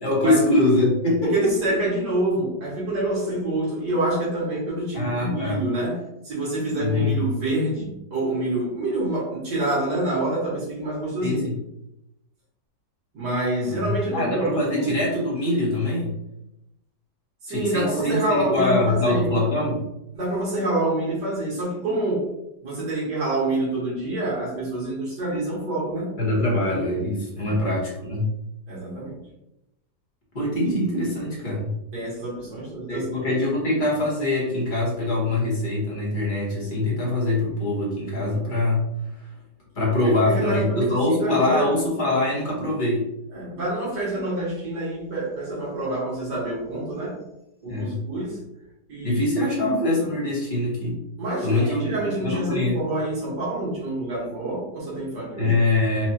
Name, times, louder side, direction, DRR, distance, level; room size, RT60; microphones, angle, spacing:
voice 1, 0.0-1.8 4.9-5.6 6.8-7.2 11.2-11.6 13.6-16.1 17.5-19.8 26.2-28.3 30.3-31.8 32.9-38.9 39.2-39.3 39.7-43.0 47.7-48.0 49.0-51.0 51.4-52.8 55.4-56.1, left 2 dB, 30° left, -5 dB, 1.2 m, -23 dB
voice 2, 1.3-11.4 13.1-14.9 17.4-19.3 20.1-22.3 22.6-26.2 27.4-27.6 28.7-29.2 31.9-33.2 40.0-41.7 43.3-47.2 47.6-48.4 48.9-49.8 51.2-55.5, right 2 dB, 75° right, -7 dB, 2.1 m, -27 dB
4.5 x 2.4 x 2.8 m, 0.86 s
omnidirectional pair, 1.8 m